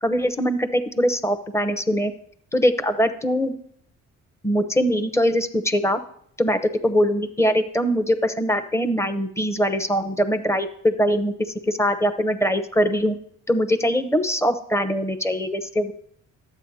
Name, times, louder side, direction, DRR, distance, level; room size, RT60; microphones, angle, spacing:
voice 1, 0.0-2.1 2.5-3.6 4.4-6.0 6.4-13.2 13.5-15.9, equal, 10° left, 8 dB, 0.8 m, -22 dB
12.5 x 8.0 x 2.8 m, 0.65 s
cardioid pair, 90°, 30 cm